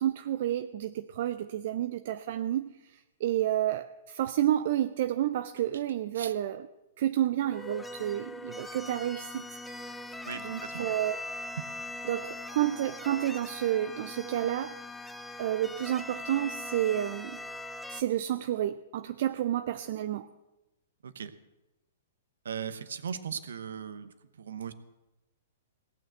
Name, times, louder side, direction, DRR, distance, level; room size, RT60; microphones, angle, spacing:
voice 1, 0.0-6.7 7.0-9.5 10.3-11.2 12.0-14.8 15.4-17.4 17.9-20.3, right 12 dB, 55° right, 10 dB, 0.5 m, -30 dB
sound 1, 7.4-18.0, left 2 dB, 5° left, 0.6 m, -41 dB
voice 2, 10.2-10.9 21.0-21.3 22.4-24.7, right 7 dB, 70° right, 12 dB, 1.0 m, -38 dB
17.0 x 6.5 x 7.8 m, 1.0 s
hypercardioid pair, 115°, 0 cm